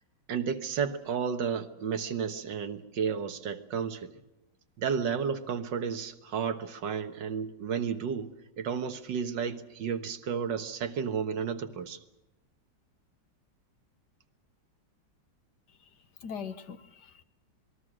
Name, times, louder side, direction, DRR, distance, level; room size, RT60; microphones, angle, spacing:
voice 1, 0.3-4.1 4.8-12.0, right 6 dB, 80° right, 8 dB, 2.0 m, -32 dB
voice 2, 15.7-17.2, left 6 dB, 65° left, 11 dB, 1.7 m, -42 dB
26.5 x 20.5 x 6.3 m, 0.99 s
omnidirectional pair, 2.0 m